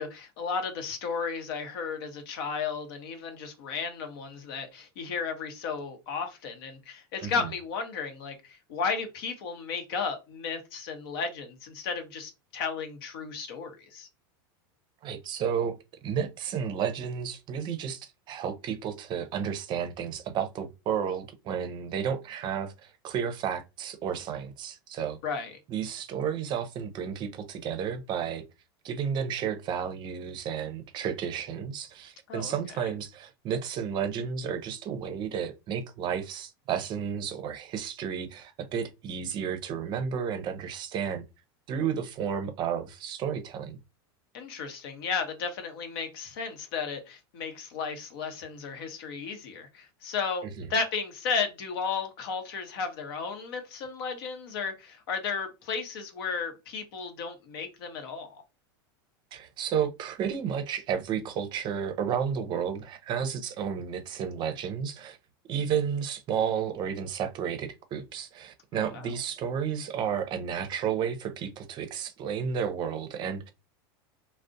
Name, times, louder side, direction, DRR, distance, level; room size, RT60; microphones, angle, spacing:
voice 1, 0.0-14.1 25.2-25.6 32.3-32.5 44.3-58.4 68.7-69.1, left 5 dB, 70° left, 0.8 m, -34 dB
voice 2, 15.0-15.7 16.0-25.2 25.7-28.4 28.8-41.2 41.7-43.8 50.6-50.7 59.3-65.2 65.5-73.5, right 7 dB, 40° right, 0.5 m, -32 dB
2.4 x 2.0 x 2.5 m
supercardioid pair, 120°, 13 cm